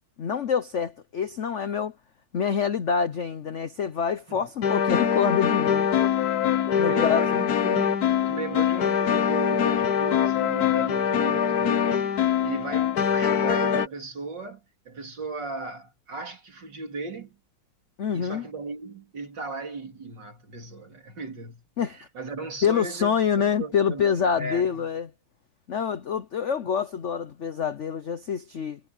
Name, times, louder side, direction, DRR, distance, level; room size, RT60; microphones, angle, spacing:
voice 1, 0.2-1.9 2.3-5.9 6.7-7.2 18.0-18.4 21.8-22.0 22.6-25.1 25.7-28.8, left 7 dB, 75° left, 0.6 m, -26 dB
sound 1, 4.6-13.9, left 8 dB, 55° left, 1.3 m, -23 dB
voice 2, 6.5-12.0 12.4-17.4 18.1-24.8, right 3 dB, 55° right, 3.9 m, -36 dB
omnidirectional pair, 2.3 m